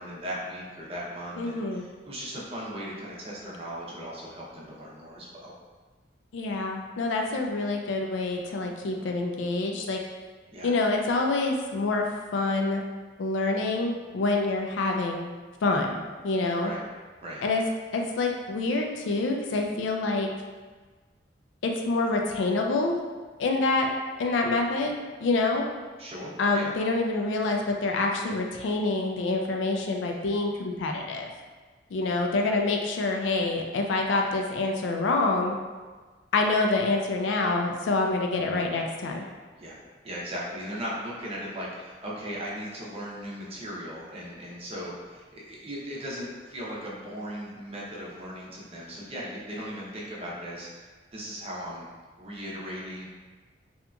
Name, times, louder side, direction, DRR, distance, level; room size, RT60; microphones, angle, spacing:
voice 1, 0.0-5.5 10.5-10.7 16.6-16.8 17.2-17.4 26.0-26.7 39.6-51.9 52.2-53.1, equal, 35° right, -5 dB, 0.6 m, -38 dB
voice 2, 1.4-1.9 6.3-10.0 10.6-12.8 13.2-15.3 15.6-16.7 17.4-17.6 17.9-20.3 21.6-23.0 23.4-23.9 24.2-25.7 26.4-31.3 31.9-35.6 36.3-39.2, left 3 dB, 80° left, 2 dB, 0.4 m, -26 dB
2.8 x 2.4 x 2.2 m, 1.4 s
head